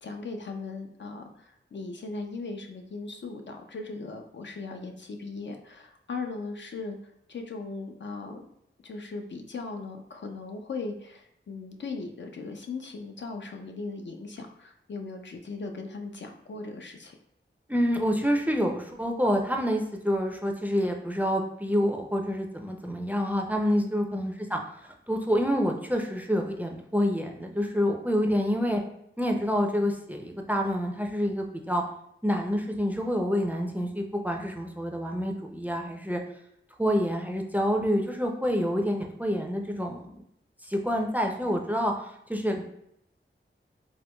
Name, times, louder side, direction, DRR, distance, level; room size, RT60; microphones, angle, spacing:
voice 1, 0.0-7.0 7.3-8.5 8.8-17.1 23.7-23.9, left 3 dB, 60° left, 4 dB, 0.4 m, -38 dB
voice 2, 17.7-24.6 25.1-28.8 29.2-31.8 32.2-36.2 36.8-40.2 40.6-42.6, equal, 10° right, 2 dB, 0.4 m, -27 dB
4.4 x 2.1 x 2.2 m, 0.76 s
wide cardioid pair, 65°, 21 cm